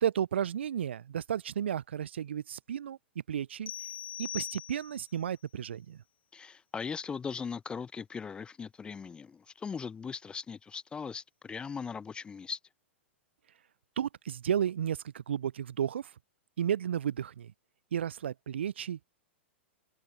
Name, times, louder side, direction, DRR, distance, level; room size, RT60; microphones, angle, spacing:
voice 1, 0.0-3.0 3.3-3.7 4.2-6.0 14.0-16.1 16.6-17.5 17.9-19.2, right 9 dB, 65° right, 1.0 m, -33 dB
sound 1, 3.7-5.2, left 10 dB, 60° left, 0.8 m, -41 dB
voice 2, 6.3-12.6, left 6 dB, 15° left, 0.6 m, -39 dB
figure-of-eight pair, 100°, 7 cm